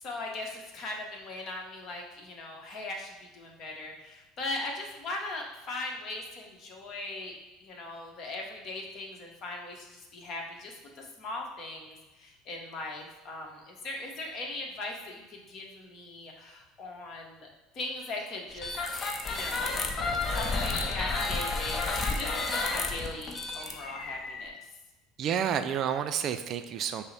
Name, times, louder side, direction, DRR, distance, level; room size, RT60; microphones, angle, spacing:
voice 1, 0.0-7.3 7.6-17.5 17.7-18.7 19.3-19.8 20.3-24.6, left 2 dB, 50° left, 1 dB, 1.0 m, -39 dB
sound 1, 18.6-24.5, left 3 dB, 35° left, 0.6 m, -31 dB
voice 2, 25.2-27.0, right 8 dB, 50° right, 9 dB, 0.3 m, -30 dB
5.5 x 2.1 x 4.1 m, 1.1 s
hypercardioid pair, 85°, 0 cm